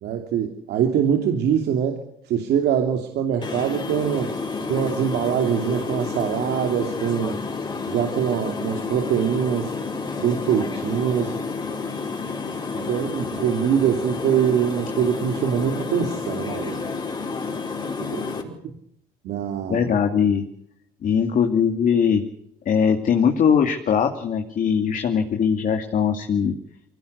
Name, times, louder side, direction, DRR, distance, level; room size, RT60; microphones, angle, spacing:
voice 1, 0.0-4.4 4.7-7.4 7.9-9.8 10.2-11.4 12.7-16.9 18.6-18.7 19.2-19.9, right 8 dB, 75° right, 4 dB, 2.9 m, -23 dB
sound 1, 3.4-18.4, left 4 dB, 25° left, 5.1 m, -30 dB
voice 2, 19.7-20.4 21.0-22.2 22.7-26.5, left 7 dB, 50° left, 4 dB, 2.6 m, -20 dB
24.0 x 17.5 x 8.2 m, 0.73 s
cardioid pair, 110°, 17 cm